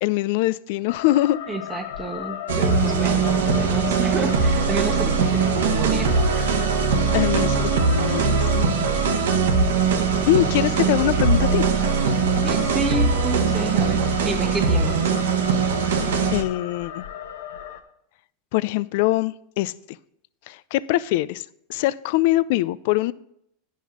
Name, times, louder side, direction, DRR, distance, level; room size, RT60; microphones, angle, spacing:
voice 1, 0.0-1.4 7.1-8.7 10.3-11.7 15.9-17.1 18.5-19.7 20.5-23.1, left 16 dB, 65° left, 18 dB, 0.4 m, -23 dB
sound 1, 0.9-17.8, left 10 dB, 80° left, 1.0 m, -35 dB
voice 2, 1.5-6.5 8.1-8.3 12.3-15.1, right 3 dB, 15° right, 3 dB, 1.1 m, -30 dB
sound 2, 2.5-16.4, right 5 dB, 90° right, 1.2 m, -21 dB
10.0 x 5.5 x 6.1 m, 0.73 s
supercardioid pair, 130°, 0 cm